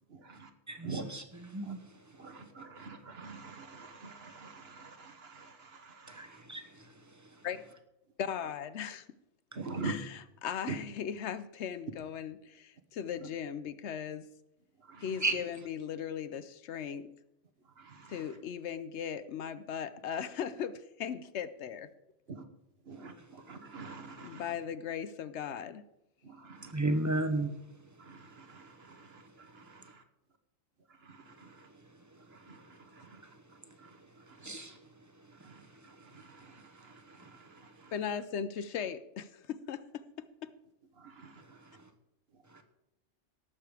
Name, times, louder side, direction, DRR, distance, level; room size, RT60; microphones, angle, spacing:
voice 1, 0.1-0.5 0.8-1.0 1.6-1.8 2.2-6.4 9.5-9.9 10.7-10.8 13.2-13.3 14.8-15.2 17.6-18.4 22.3-22.4 22.8-24.5 26.2-26.7 28.0-29.7 30.9-31.7 32.3-34.0 34.3-34.8 35.4-37.9 41.0-41.8 42.3-42.6, right 4 dB, 60° right, 1.3 m, -46 dB
voice 2, 0.7-1.2 1.5-1.8 6.1-6.9 15.2-15.4 26.7-27.5 33.2-33.3 34.4-34.8 37.2-37.3, right 2 dB, 15° right, 0.9 m, -33 dB
voice 3, 8.2-9.1 9.8-14.3 15.0-17.1 18.1-21.9 24.2-25.8 37.9-40.5, left 8 dB, 70° left, 0.9 m, -38 dB
18.0 x 6.8 x 4.8 m
omnidirectional pair, 1.2 m